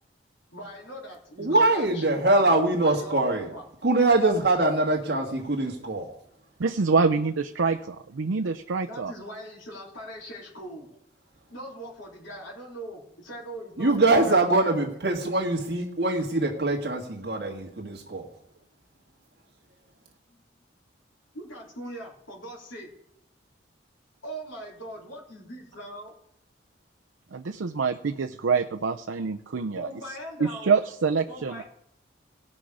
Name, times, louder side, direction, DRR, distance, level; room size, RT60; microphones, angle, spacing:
voice 1, 0.5-3.2 3.5-3.6 8.9-10.9 11.5-14.7 19.4-19.5 20.3-20.4 21.3-22.9 24.2-26.1 29.7-30.7 31.3-31.6, right 1 dB, 90° left, -3 dB, 3.4 m, -41 dB
voice 2, 1.4-3.5 3.8-6.1 13.8-18.3, right 2 dB, 55° right, 0 dB, 1.7 m, -23 dB
voice 3, 6.6-9.1 27.3-29.9 30.4-31.6, right 4 dB, 90° right, 6 dB, 0.6 m, -26 dB
17.5 x 6.1 x 4.9 m, 0.72 s
head